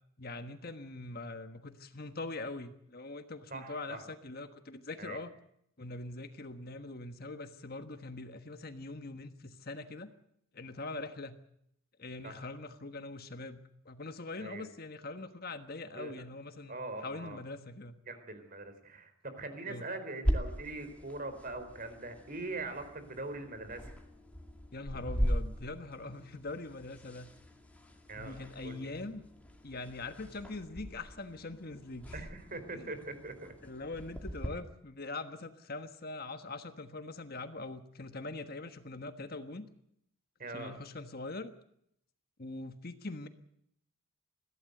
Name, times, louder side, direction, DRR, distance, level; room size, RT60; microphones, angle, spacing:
voice 1, 0.2-5.3 5.8-10.1 10.5-11.4 12.0-17.9 19.7-19.8 24.7-27.3 28.2-29.3 29.6-32.2 32.7-32.8 33.6-39.7 40.5-41.5 42.4-43.3, left 2 dB, 45° left, 9 dB, 1.4 m, -42 dB
voice 2, 3.5-4.0 5.0-5.2 12.2-12.5 14.4-14.7 15.9-16.1 16.7-17.4 18.1-24.0 28.1-28.4 28.6-28.9 32.1-33.5 40.4-40.8, right 2 dB, 40° right, 9 dB, 4.0 m, -42 dB
sound 1, 20.2-34.5, equal, 5° left, 2.4 m, -39 dB
22.0 x 16.0 x 7.9 m, 0.73 s
head